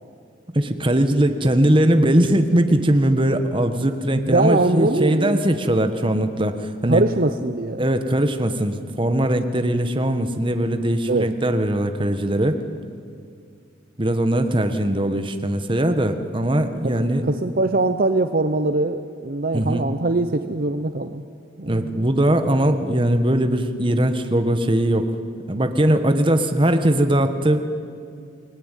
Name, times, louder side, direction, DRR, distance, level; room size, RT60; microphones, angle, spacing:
voice 1, 0.5-7.0 7.8-12.6 14.0-17.3 19.5-19.9 21.6-25.1 25.5-27.6, right 1 dB, 25° right, 7 dB, 1.4 m, -20 dB
voice 2, 4.1-5.4 6.8-7.8 11.1-11.3 16.8-21.2 21.6-22.1, right 2 dB, 45° right, 9 dB, 0.7 m, -22 dB
29.0 x 19.5 x 9.2 m, 2.3 s
head